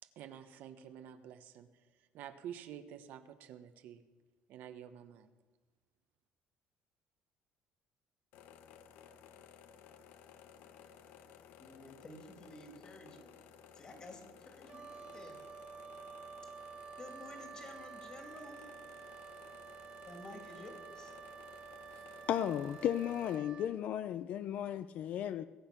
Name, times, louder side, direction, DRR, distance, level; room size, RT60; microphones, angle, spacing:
voice 1, 0.2-1.7 2.1-4.0 4.5-5.3, right 9 dB, 65° right, 9 dB, 1.0 m, -49 dB
sound 1, 8.3-23.4, left 8 dB, 70° left, 1.0 m, -57 dB
voice 2, 11.6-13.3 13.7-15.4 17.0-18.7 20.1-21.1, left 2 dB, 25° left, 4 dB, 2.4 m, -52 dB
Wind instrument woodwind instrument, 14.7-23.8, right 6 dB, 25° right, 0.3 m, -50 dB
voice 3, 22.3-25.4, left 10 dB, 50° left, 13 dB, 0.4 m, -35 dB
21.0 x 9.0 x 5.9 m, 1.2 s
cardioid pair, 160°, 3 cm